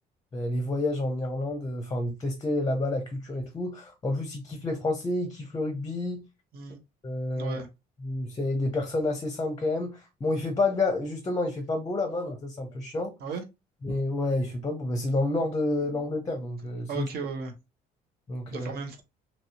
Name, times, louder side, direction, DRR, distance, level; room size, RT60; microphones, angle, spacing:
voice 1, 0.3-6.2 7.0-7.6 8.0-13.1 13.8-17.1 18.3-18.7, left 2 dB, 20° left, 0.6 m, -29 dB
voice 2, 7.4-7.7 13.2-13.4 16.9-17.5 18.5-19.0, right 4 dB, 65° right, 0.9 m, -35 dB
2.9 x 2.7 x 2.7 m
cardioid pair, 110°, 17 cm